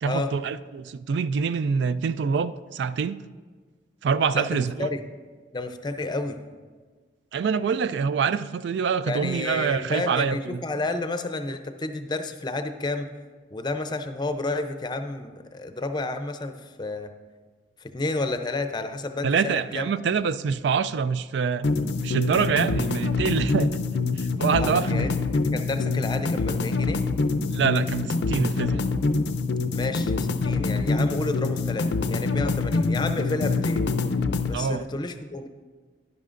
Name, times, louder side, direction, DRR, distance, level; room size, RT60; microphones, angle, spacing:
voice 1, 0.0-3.2 4.0-4.9 7.3-10.6 19.2-21.7 22.0-23.7 24.2-25.1 27.5-28.9 34.5-34.8, right 6 dB, 80° right, 15 dB, 0.3 m, -25 dB
voice 2, 4.3-5.0 5.5-6.4 9.0-13.1 13.5-17.1 17.8-19.8 24.6-25.1 25.5-27.0 29.7-33.9 34.4-35.5, left 2 dB, 25° left, 8 dB, 0.5 m, -31 dB
sound 1, 21.6-34.6, left 3 dB, 75° left, 0.5 m, -25 dB
11.0 x 10.5 x 2.5 m, 1.5 s
head